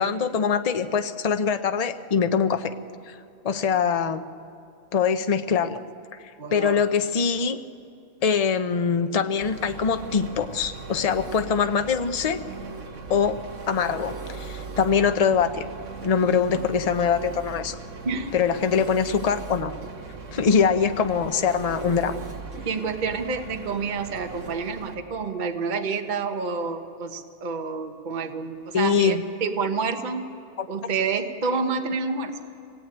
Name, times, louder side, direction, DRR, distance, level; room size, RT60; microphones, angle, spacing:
voice 1, 0.0-2.7 3.1-3.2 3.4-4.2 4.9-5.8 6.5-7.6 8.2-12.4 13.1-13.4 13.7-15.6 16.0-17.7 18.3-19.7 20.3-22.2 28.7-29.2 30.6-30.7, left 6 dB, 35° left, 8 dB, 0.6 m, -23 dB
voice 2, 6.4-6.9 18.0-18.3 22.6-30.3 30.7-32.3, right 4 dB, 35° right, 5 dB, 1.1 m, -28 dB
Engine, 9.4-24.9, right 4 dB, 55° right, 1.5 m, -38 dB
24.5 x 18.0 x 9.0 m, 2.5 s
omnidirectional pair, 1.6 m